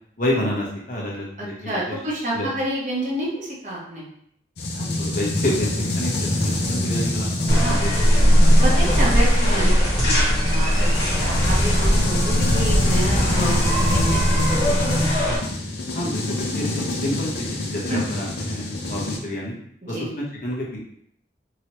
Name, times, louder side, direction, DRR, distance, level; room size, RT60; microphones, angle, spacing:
voice 1, 0.2-2.0 2.3-2.5 4.7-8.8 9.5-9.8 15.9-19.5 19.9-20.8, left 1 dB, 50° left, -3 dB, 0.9 m, -29 dB
voice 2, 1.4-4.1 7.6-7.8 8.6-15.3 17.9-18.0 19.9-20.1, right 1 dB, 45° right, -5 dB, 1.0 m, -29 dB
sound 1, 4.6-19.2, left 1 dB, 65° left, 0.5 m, -26 dB
sound 2, 7.5-15.4, equal, 35° left, 1.4 m, -19 dB
2.9 x 2.9 x 2.9 m, 0.69 s
head